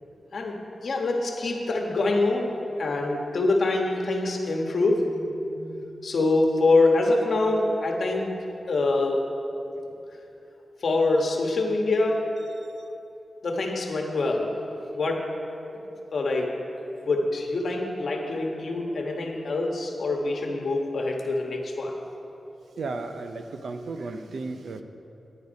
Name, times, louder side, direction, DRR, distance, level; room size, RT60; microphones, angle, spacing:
voice 1, 0.3-2.5 2.8-8.3 8.7-9.2 10.8-12.3 13.4-14.5 14.9-15.3 15.7-15.8 16.1-16.5 17.1-21.9, left 2 dB, 60° left, 1 dB, 1.3 m, -25 dB
voice 2, 22.8-24.8, right 3 dB, 75° right, 7 dB, 0.6 m, -34 dB
9.9 x 9.5 x 5.2 m, 3.0 s
wide cardioid pair, 120°, 0 cm